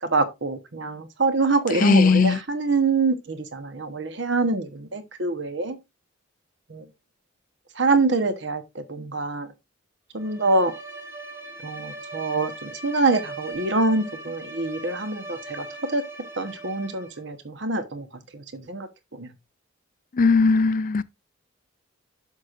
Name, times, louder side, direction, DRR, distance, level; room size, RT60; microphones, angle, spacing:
voice 1, 0.0-5.8 6.7-6.9 7.7-9.5 10.1-10.7 11.6-16.0 16.4-18.1 18.3-19.3, right 3 dB, 55° right, 1.1 m, -25 dB
voice 2, 1.8-2.4 20.1-21.0, left 4 dB, 40° left, 0.4 m, -18 dB
Bowed string instrument, 10.2-17.3, right 2 dB, 10° right, 1.0 m, -39 dB
10.5 x 6.6 x 2.5 m
head